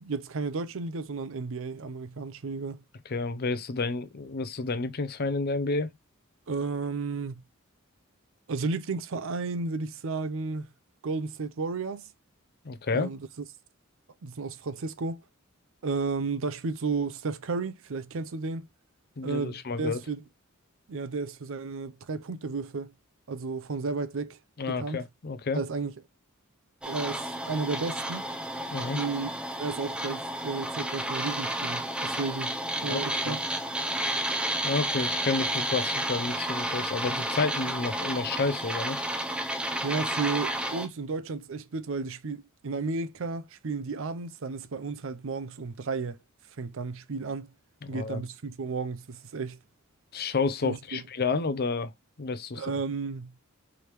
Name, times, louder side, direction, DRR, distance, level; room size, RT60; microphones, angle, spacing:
voice 1, 0.0-2.8 6.5-7.4 8.5-10.7 11.0-12.1 12.9-13.3 14.2-15.2 15.8-18.7 19.2-20.2 20.9-22.9 23.3-24.4 24.7-25.0 25.5-25.9 26.8-28.2 28.9-29.3 29.6-32.6 32.8-33.4 39.8-46.2 46.6-47.5 47.9-49.6 50.6-51.0 52.6-53.3, right 4 dB, 70° right, 0.6 m, -33 dB
voice 2, 3.1-5.9 12.6-13.1 19.2-20.0 24.6-25.6 28.7-29.0 32.8-33.4 34.6-39.0 47.8-48.2 50.1-51.9 52.2-52.7, left 4 dB, 50° left, 0.6 m, -30 dB
sound 1, 26.8-40.9, right 1 dB, 5° right, 0.6 m, -31 dB
4.8 x 3.4 x 3.0 m
head